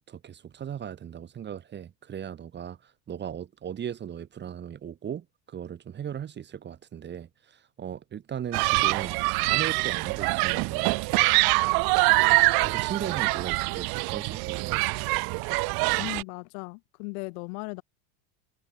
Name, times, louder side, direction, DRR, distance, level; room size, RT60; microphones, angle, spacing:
voice 1, 0.0-9.2 9.5-11.0 12.6-14.8, right 9 dB, 20° right, 2.1 m, -37 dB
Human group actions, 8.5-16.2, right 29 dB, 45° right, 1.8 m, -24 dB
voice 2, 16.0-17.8, left 33 dB, 55° left, 1.8 m, -37 dB
supercardioid pair, 155°, 49 cm